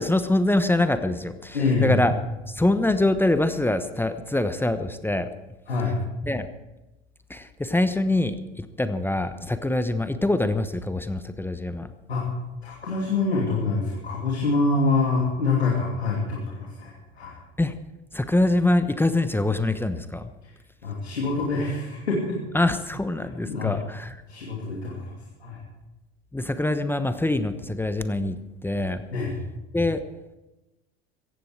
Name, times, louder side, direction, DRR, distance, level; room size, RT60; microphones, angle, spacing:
voice 1, 0.0-5.3 6.2-6.5 7.3-11.9 17.6-17.7 18.1-20.3 22.5-24.2 26.3-28.4 28.6-29.0 29.7-30.0, left 2 dB, 5° left, 10 dB, 1.1 m, -24 dB
voice 2, 1.5-2.1 5.7-6.0 12.1-12.3 12.6-17.4 20.4-20.5 20.8-22.4 23.4-23.8 24.3-25.1 25.4-25.6 29.1-29.4, left 3 dB, 90° left, -2 dB, 2.8 m, -25 dB
17.0 x 14.5 x 4.8 m, 1.0 s
hypercardioid pair, 75°, 31 cm